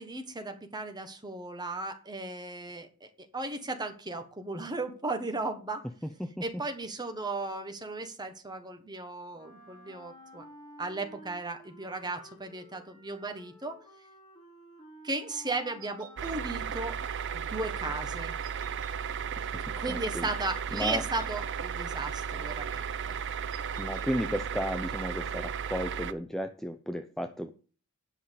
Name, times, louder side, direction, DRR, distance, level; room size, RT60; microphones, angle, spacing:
voice 1, 0.0-5.8 6.4-10.4 10.8-13.8 15.0-17.0 17.3-18.3 19.7-23.1, right 2 dB, 20° right, 6 dB, 1.4 m, -36 dB
Wind instrument woodwind instrument, 9.3-17.5, right 1 dB, 20° left, 4.9 m, -53 dB
sound 1, 15.8-16.3 18.4-18.9 20.7-21.3 23.5-24.1, right 7 dB, 40° right, 2.5 m, -51 dB
sound 2, 16.2-26.1, right 7 dB, 55° right, 0.6 m, -35 dB
voice 2, 19.9-20.3 20.7-21.0 23.8-27.5, equal, ahead, 7 dB, 0.5 m, -34 dB
9.8 x 5.7 x 6.7 m, 0.39 s
head